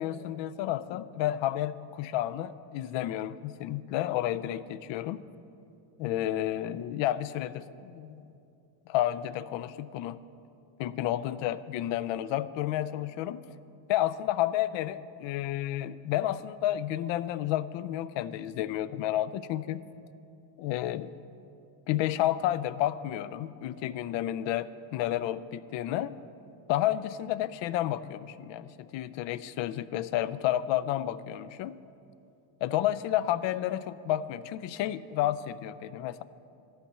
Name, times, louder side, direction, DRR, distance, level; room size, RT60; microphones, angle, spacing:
voice 1, 0.0-5.2 6.0-8.2 8.9-10.2 10.8-13.4 13.9-19.8 20.6-21.1 21.9-26.2 26.7-31.8 32.6-36.2, left 13 dB, 65° left, 16 dB, 0.5 m, -31 dB
10.0 x 5.8 x 8.0 m, 2.6 s
cardioid pair, 120°, 48 cm